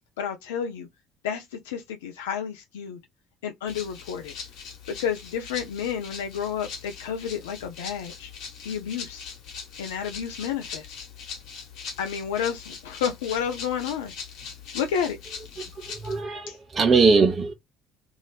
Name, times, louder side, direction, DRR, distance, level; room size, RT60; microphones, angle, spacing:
voice 1, 0.2-0.9 1.2-3.0 3.4-4.3 4.9-8.3 8.6-9.3 9.8-11.0 12.0-14.1 14.7-15.2 16.5-16.6, left 8 dB, 80° left, 0.5 m, -30 dB
Rattle (instrument), 3.7-16.2, left 6 dB, 65° left, 1.3 m, -41 dB
voice 2, 15.7-17.5, right 4 dB, 35° right, 0.9 m, -21 dB
3.0 x 2.8 x 2.3 m
hypercardioid pair, 55°, 0 cm